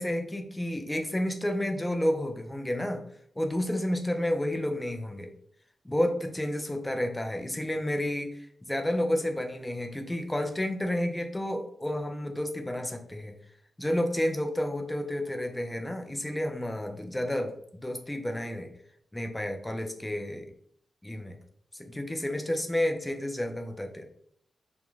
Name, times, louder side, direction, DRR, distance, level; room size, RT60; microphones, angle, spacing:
voice 1, 0.0-3.0 3.4-5.3 5.8-13.3 13.8-18.7 19.1-20.4 21.0-21.4 21.7-24.1, left 1 dB, 10° left, 4 dB, 0.3 m, -30 dB
2.4 x 2.0 x 3.0 m, 0.65 s
wide cardioid pair, 95°, 0 cm